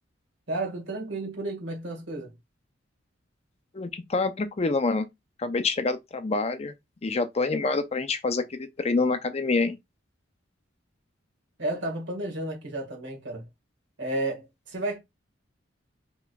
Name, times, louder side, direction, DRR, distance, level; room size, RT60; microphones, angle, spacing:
voice 1, 0.5-2.3 11.6-13.5 14.0-15.0, right 2 dB, 70° right, 1.7 m, -32 dB
voice 2, 3.7-5.1 5.4-6.7 7.0-9.8, left 3 dB, 35° left, 0.5 m, -26 dB
5.7 x 3.0 x 2.3 m
head